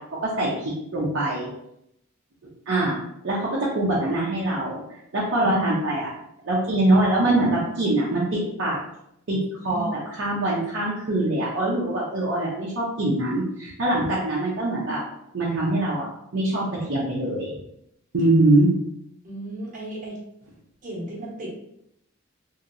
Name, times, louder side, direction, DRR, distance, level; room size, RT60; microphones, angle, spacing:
voice 1, 0.0-1.5 2.7-3.0 3.2-4.8 5.1-6.1 6.4-8.8 9.3-9.4 9.6-9.9 10.2-15.0 15.3-16.1 16.3-17.5 18.1-18.7, right 1 dB, 60° right, -6 dB, 0.7 m, -23 dB
voice 2, 19.2-20.2 20.8-21.5, right 1 dB, 40° right, -5 dB, 1.1 m, -35 dB
2.9 x 2.7 x 2.5 m, 0.79 s
head